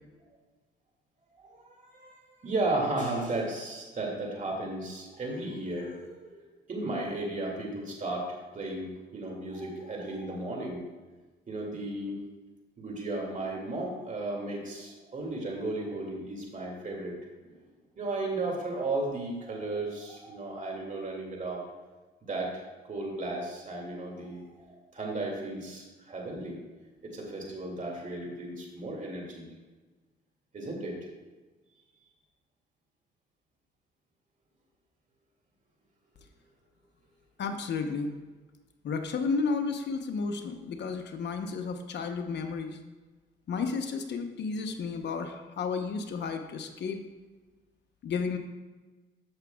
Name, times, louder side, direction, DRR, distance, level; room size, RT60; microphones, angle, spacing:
voice 1, 1.4-10.8 11.5-12.2 12.8-17.5 18.0-21.7 22.2-24.6 24.9-26.6 27.0-29.5 30.5-31.0, right 2 dB, 40° right, 0 dB, 2.3 m, -35 dB
voice 2, 37.4-38.1 38.8-42.8 43.5-47.0 48.0-48.4, left 4 dB, 60° left, 6 dB, 0.9 m, -32 dB
13.5 x 6.0 x 2.3 m, 1.3 s
cardioid pair, 90°, 20 cm